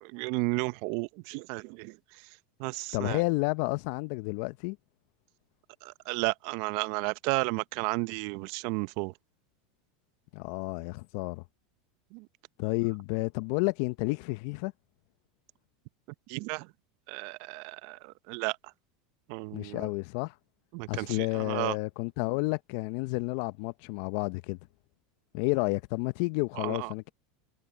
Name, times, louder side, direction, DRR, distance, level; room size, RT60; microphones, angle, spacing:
voice 1, 0.0-2.0 2.6-3.2 5.8-9.1 12.1-12.3 16.3-16.7 17.1-18.6 19.3-19.9 20.7-21.7 26.6-27.1, right 27 dB, 60° right, 0.8 m, -33 dB
voice 2, 2.9-4.8 10.3-11.4 12.6-14.7 19.5-20.3 20.9-24.6 25.3-27.1, left 26 dB, 65° left, 0.7 m, -31 dB
hypercardioid pair, 90°, 0 cm